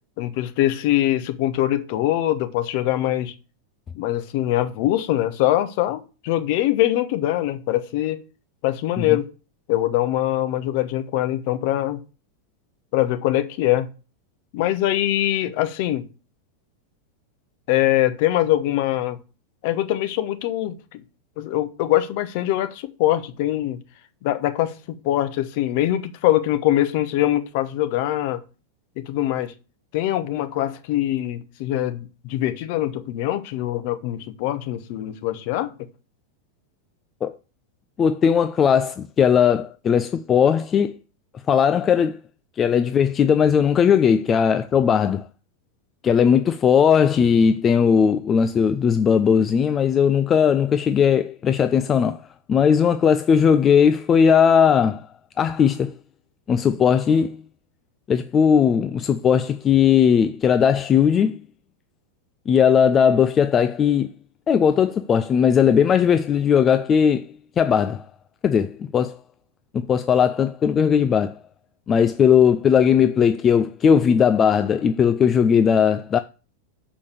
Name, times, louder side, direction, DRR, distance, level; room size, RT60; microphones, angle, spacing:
voice 1, 0.2-3.3 3.9-8.2 8.6-9.3 9.7-12.0 12.9-13.9 14.5-16.0 17.7-19.2 19.6-21.0 21.4-23.8 24.2-24.7 25.0-28.4 29.0-29.5 29.9-35.7, left 14 dB, 45° left, 1.0 m, -23 dB
voice 2, 38.0-41.0 41.5-42.2 42.6-45.3 46.0-52.2 52.5-55.1 55.4-55.9 56.5-57.4 58.1-61.4 62.5-64.1 64.5-67.3 67.6-68.0 68.4-69.2 69.7-71.3 71.9-76.2, left 7 dB, 25° left, 0.4 m, -18 dB
6.6 x 5.1 x 6.9 m
figure-of-eight pair, 90°, 0 cm